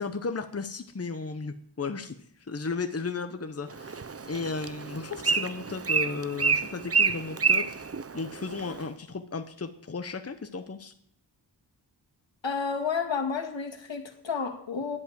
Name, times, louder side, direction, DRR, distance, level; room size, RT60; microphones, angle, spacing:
voice 1, 0.0-4.0 4.3-10.9, left 4 dB, 35° left, 8 dB, 1.0 m, -35 dB
Bird, 3.7-8.8, right 5 dB, 35° right, 0.7 m, -28 dB
voice 2, 12.4-15.0, left 5 dB, 85° left, 4 dB, 2.0 m, -31 dB
11.0 x 7.5 x 9.2 m, 0.66 s
wide cardioid pair, 65°, 43 cm